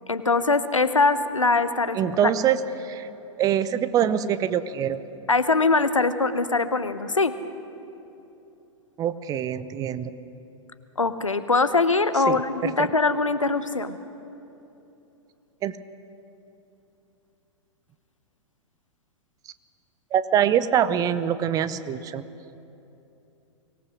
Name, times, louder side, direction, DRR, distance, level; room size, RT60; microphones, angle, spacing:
voice 1, 0.1-2.3 5.3-7.4 11.0-14.0, left 3 dB, 80° left, 11 dB, 1.0 m, -22 dB
voice 2, 1.9-3.1 3.4-5.0 9.0-10.1 12.3-12.7 15.6-15.8 20.1-22.2, right 9 dB, 20° right, 14 dB, 0.7 m, -24 dB
24.0 x 18.5 x 6.3 m, 2.9 s
figure-of-eight pair, 105°, 16 cm